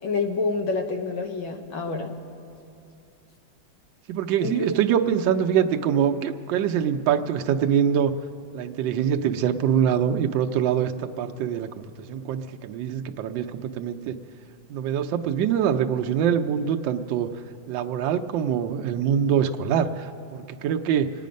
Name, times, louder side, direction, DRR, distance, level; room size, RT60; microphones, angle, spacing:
voice 1, 0.0-2.1 4.4-4.7, left 4 dB, 85° left, 4 dB, 1.9 m, -27 dB
voice 2, 4.1-8.1 8.5-14.2 14.7-17.3 17.7-21.1, right 8 dB, 75° right, 5 dB, 1.3 m, -24 dB
26.0 x 9.2 x 5.2 m, 2.5 s
omnidirectional pair, 2.1 m